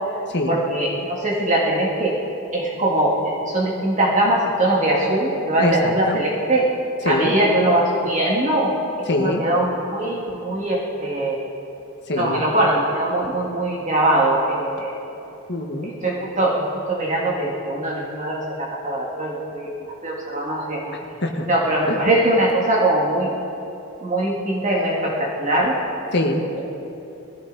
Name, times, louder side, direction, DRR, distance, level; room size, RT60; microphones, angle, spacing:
voice 1, 0.5-2.2 2.5-6.7 7.0-8.7 9.2-11.4 12.1-14.9 15.8-20.8 21.5-23.3 24.0-25.8, right 1 dB, 35° right, -4 dB, 2.0 m, -21 dB
voice 2, 5.6-6.2 7.0-7.3 9.1-9.4 12.1-12.4 15.5-15.9 20.9-21.4 21.9-22.0 26.1-26.4, left 1 dB, 50° left, 2 dB, 1.5 m, -23 dB
21.0 x 15.0 x 4.1 m, 2.9 s
head